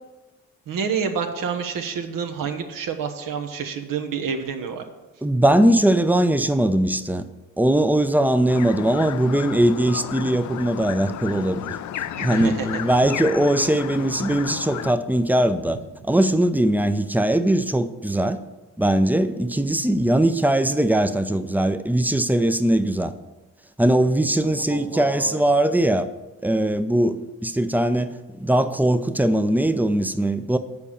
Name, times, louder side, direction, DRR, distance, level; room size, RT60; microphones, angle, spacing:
voice 1, 0.7-4.8 12.0-13.1 24.7-25.5, right 6 dB, 65° right, 1.0 m, -29 dB
voice 2, 5.2-7.2 7.6-11.6 12.2-15.8 16.1-18.4 18.8-23.1 23.8-26.1 26.4-28.1 28.4-30.6, right 1 dB, 5° right, 0.6 m, -20 dB
sound 1, 8.5-15.0, left 11 dB, 55° left, 0.5 m, -33 dB
7.0 x 4.8 x 7.0 m
hypercardioid pair, 40°, 35 cm